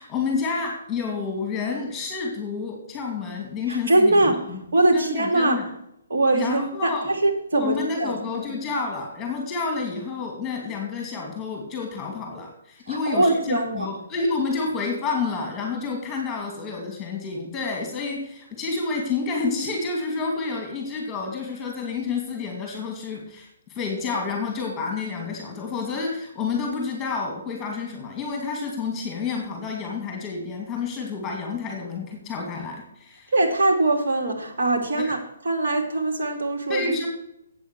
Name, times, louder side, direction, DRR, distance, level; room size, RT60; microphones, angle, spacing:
voice 1, 0.0-4.6 4.9-5.7 6.3-7.1 7.5-33.3 35.0-35.2 36.7-37.1, left 4 dB, 15° left, 1 dB, 2.6 m, -29 dB
voice 2, 3.7-4.4 4.7-5.6 6.1-8.5 12.9-13.9 33.3-35.2 35.4-37.0, right 2 dB, 70° right, 2 dB, 2.7 m, -22 dB
8.3 x 7.0 x 8.0 m, 0.78 s
hypercardioid pair, 150°, 0 cm